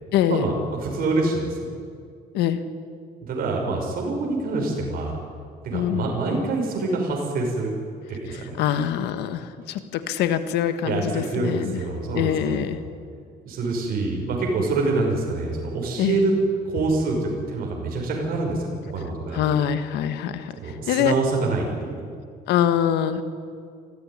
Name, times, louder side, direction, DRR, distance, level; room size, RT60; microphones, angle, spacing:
voice 1, 0.1-0.5 2.3-2.6 5.7-6.1 8.3-11.8 12.1-12.8 16.0-16.2 19.3-20.5 20.9-21.1 22.5-23.2, left 10 dB, 85° left, 10 dB, 1.6 m, -24 dB
voice 2, 0.8-1.7 3.2-5.2 5.6-7.7 8.1-8.6 10.8-12.7 13.5-16.3 16.7-19.6 20.6-22.1, right 3 dB, 60° right, -1 dB, 5.6 m, -26 dB
24.5 x 15.0 x 10.0 m, 2.2 s
cardioid pair, 110°, 17 cm